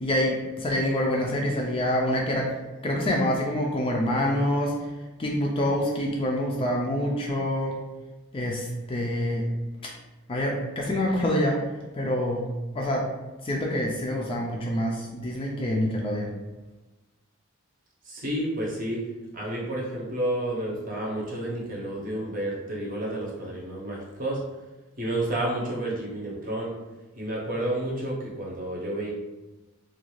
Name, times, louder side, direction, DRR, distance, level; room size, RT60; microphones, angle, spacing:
voice 1, 0.0-2.5 2.8-4.7 5.2-7.7 8.3-9.4 10.3-11.6 11.9-12.4 12.7-13.0 13.4-16.3, left 1 dB, 25° left, -1 dB, 0.3 m, -26 dB
voice 2, 18.0-19.0 19.3-24.4 25.0-26.7 27.2-29.1, right 1 dB, 40° right, -3 dB, 0.7 m, -30 dB
2.4 x 2.3 x 3.0 m, 1.1 s
head